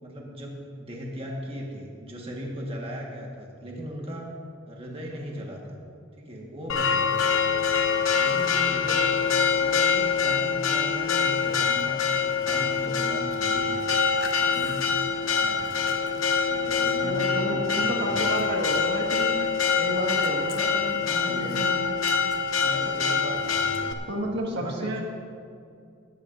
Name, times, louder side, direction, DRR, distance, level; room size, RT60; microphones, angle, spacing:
voice 1, 0.0-4.3 4.7-5.8 6.2-7.3 8.1-9.3 9.6-13.9 14.4-14.9 15.2-15.7 16.4-18.4 21.0-21.7 22.1-22.2 22.6-24.0 24.5-25.0, equal, 30° right, -2 dB, 1.5 m, -37 dB
Church bell, 6.7-23.9, left 6 dB, 80° left, 0.9 m, -25 dB
voice 2, 17.0-21.9 24.1-25.0, right 1 dB, 60° right, 0 dB, 1.7 m, -31 dB
17.5 x 14.0 x 2.6 m, 2.4 s
head